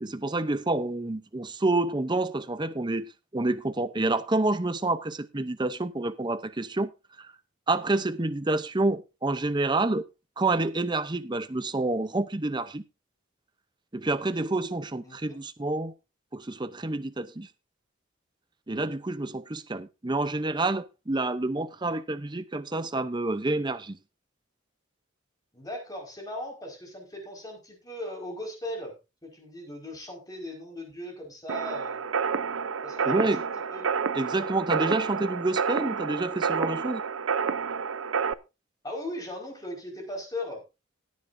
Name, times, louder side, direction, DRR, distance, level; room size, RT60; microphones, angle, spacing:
voice 1, 0.0-6.9 7.2-7.3 7.7-10.0 10.4-12.8 13.9-15.9 16.3-17.5 18.7-24.0 33.0-33.4 34.1-37.0, right 2 dB, 20° right, 0.7 m, -28 dB
voice 2, 15.0-15.4 25.5-28.9 29.2-32.0 32.8-33.9 38.8-40.6, left 1 dB, 20° left, 5.0 m, -38 dB
sound 1, 31.5-38.3, right 6 dB, 80° right, 0.7 m, -29 dB
17.0 x 10.5 x 2.7 m
head